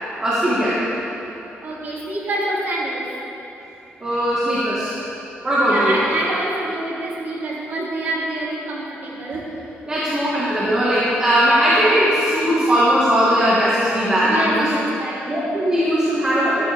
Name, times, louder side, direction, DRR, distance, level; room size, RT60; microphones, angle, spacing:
voice 1, 0.2-0.8 4.0-4.9 5.4-6.0 9.9-14.7 15.3-16.6, equal, 20° right, -9 dB, 1.9 m, -18 dB
voice 2, 1.6-3.1 5.6-9.5 14.2-15.3, right 1 dB, 50° right, -6 dB, 3.0 m, -26 dB
14.0 x 13.0 x 3.6 m, 2.9 s
wide cardioid pair, 170°, 4 cm